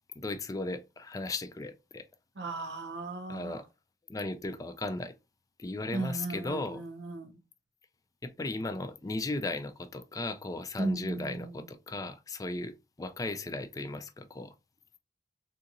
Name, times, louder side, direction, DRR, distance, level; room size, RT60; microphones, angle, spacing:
voice 1, 0.2-2.0 3.3-3.6 4.1-5.1 5.6-6.8 8.2-14.5, left 2 dB, 20° left, 0.4 m, -36 dB
voice 2, 2.3-3.6 5.9-7.4 10.8-11.7, right 2 dB, 80° right, 0.7 m, -36 dB
3.8 x 2.8 x 2.5 m
head